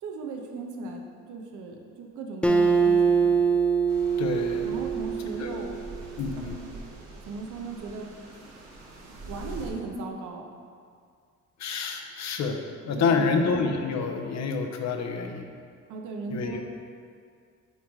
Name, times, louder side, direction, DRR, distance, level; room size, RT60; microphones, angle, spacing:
voice 1, 0.0-3.4 4.6-5.7 7.3-8.1 9.3-10.5 12.9-13.3 15.9-16.7, right 4 dB, 80° right, 2 dB, 0.8 m, -37 dB
Acoustic guitar, 2.4-5.9, right 5 dB, 5° left, 0.4 m, -23 dB
sound 1, 3.9-9.7, right 2 dB, 60° right, 1.3 m, -43 dB
voice 2, 4.2-4.8 5.4-5.5 6.2-6.6 11.6-12.6 12.8-15.5 16.3-16.6, left 4 dB, 60° left, 4 dB, 0.7 m, -28 dB
9.2 x 3.2 x 3.6 m, 2.2 s
cardioid pair, 90°, 30 cm